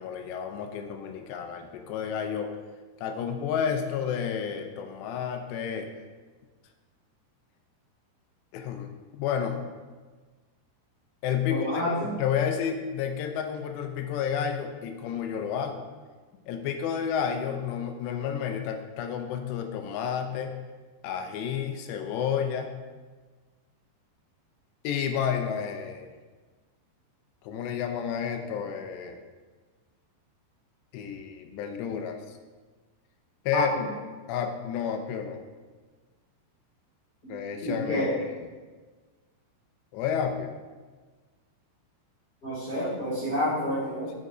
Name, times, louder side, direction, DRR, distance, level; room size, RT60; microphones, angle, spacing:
voice 1, 0.0-2.5 3.0-6.0 8.5-9.6 11.2-15.9 16.5-20.5 21.0-22.7 24.8-26.1 27.4-29.2 30.9-32.4 33.5-33.7 34.3-35.4 37.3-38.3 39.9-40.5, left 8 dB, 80° left, 5 dB, 2.7 m, -31 dB
voice 2, 11.5-12.1 33.5-33.8 37.2-37.3 37.6-38.1 42.4-44.1, equal, 20° left, -13 dB, 1.7 m, -29 dB
7.7 x 5.4 x 4.9 m, 1.4 s
omnidirectional pair, 5.2 m